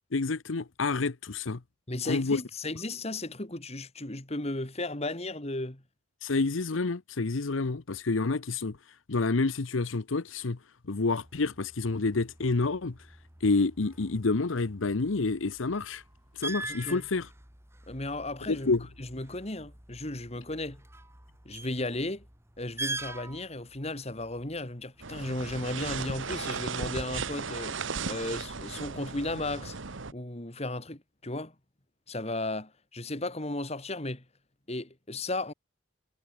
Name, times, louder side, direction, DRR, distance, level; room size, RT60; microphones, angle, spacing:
voice 1, 0.1-1.6 2.1-2.4 6.2-8.8 9.1-10.6 10.9-13.0 13.4-16.0 16.4-17.3 18.5-18.8, left 3 dB, 85° left, 0.9 m, -28 dB
voice 2, 1.9-5.8 16.7-17.0 17.9-20.8 21.4-22.3 22.6-27.8 28.1-29.8 30.1-31.5 32.1-34.2 34.7-35.5, left 2 dB, 35° left, 2.5 m, -35 dB
sound 1, 11.2-27.4, right 2 dB, 15° right, 3.7 m, -45 dB
sound 2, 25.0-30.1, right 5 dB, 80° right, 1.3 m, -36 dB
head